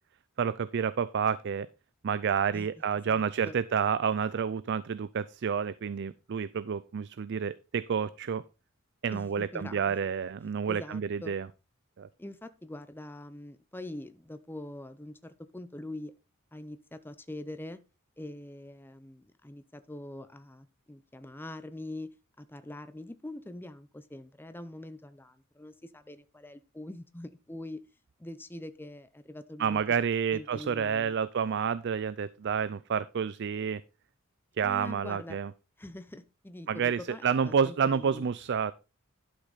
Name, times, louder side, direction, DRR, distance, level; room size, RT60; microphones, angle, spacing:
voice 1, 0.4-1.7 2.0-8.4 9.0-11.5 12.0-12.1 29.6-33.8 34.6-35.5 36.7-38.7, right 7 dB, 55° right, 16 dB, 0.4 m, -29 dB
voice 2, 3.1-3.5 9.1-9.9 10.7-11.4 12.2-16.1 16.5-17.8 18.2-27.8 28.2-30.0 30.3-31.2 34.6-35.4 35.8-38.2, left 1 dB, 10° left, 10 dB, 0.6 m, -44 dB
11.5 x 6.3 x 4.0 m, 0.29 s
head